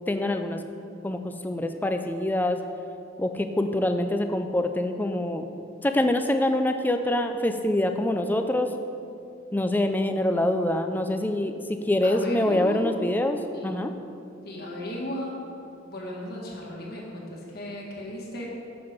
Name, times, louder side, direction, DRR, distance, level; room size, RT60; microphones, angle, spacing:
voice 1, 0.1-0.6 1.0-2.6 3.2-5.5 5.8-8.7 9.5-13.9, left 1 dB, 10° left, 6 dB, 0.4 m, -25 dB
voice 2, 12.0-12.9 13.5-13.8 14.4-15.4 15.8-18.5, left 1 dB, 50° left, -3 dB, 1.6 m, -35 dB
7.4 x 5.9 x 5.0 m, 2.6 s
head